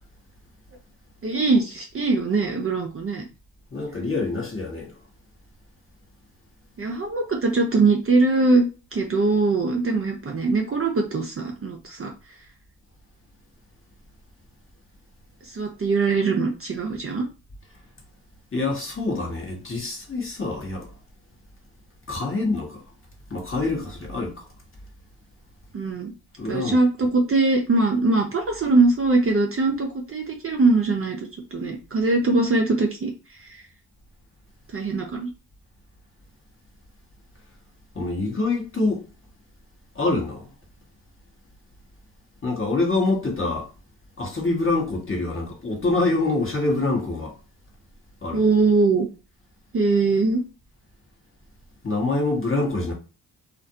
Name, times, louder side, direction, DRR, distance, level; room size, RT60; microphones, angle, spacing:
voice 1, 1.2-3.3 6.8-12.1 15.4-17.2 25.7-26.1 26.5-33.6 34.7-35.3 48.3-49.1 49.7-50.4, right 3 dB, 30° right, 0.6 m, -22 dB
voice 2, 3.7-4.9 18.5-20.9 22.1-22.8 23.3-24.5 26.4-27.1 37.9-39.0 39.9-40.5 42.4-43.7 44.2-47.3 48.2-48.5 51.8-52.9, left 3 dB, 25° left, 1.2 m, -25 dB
2.5 x 2.1 x 2.7 m
hypercardioid pair, 45°, 46 cm